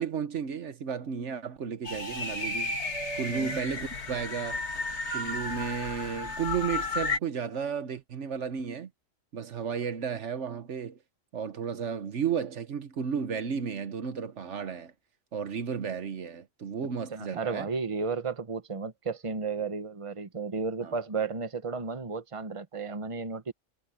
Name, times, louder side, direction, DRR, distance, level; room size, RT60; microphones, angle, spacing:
voice 1, 0.0-2.8 3.2-4.6 5.1-8.9 9.3-11.0 11.3-14.9 15.3-17.7 20.8-20.9, right 7 dB, 70° right, 1.3 m, -33 dB
sound 1, 1.8-7.2, left 3 dB, 60° left, 2.6 m, -33 dB
voice 2, 17.1-23.5, right 4 dB, 25° right, 1.2 m, -33 dB
omnidirectional pair, 1.3 m